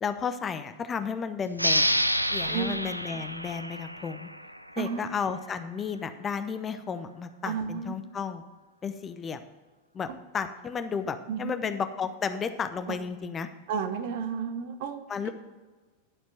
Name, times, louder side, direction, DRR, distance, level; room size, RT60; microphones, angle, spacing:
voice 1, 0.0-2.0 2.3-4.3 4.8-8.4 8.8-9.4 9.9-13.5 15.1-15.3, left 6 dB, 20° left, 9 dB, 0.6 m, -33 dB
sound 1, 1.5-4.8, equal, 90° right, 0.4 m, -28 dB
voice 2, 7.5-7.9 11.3-11.5 12.9-13.0 13.7-15.3, right 6 dB, 50° right, 8 dB, 0.9 m, -32 dB
11.5 x 4.4 x 7.5 m, 1.3 s
figure-of-eight pair, 90°, 0 cm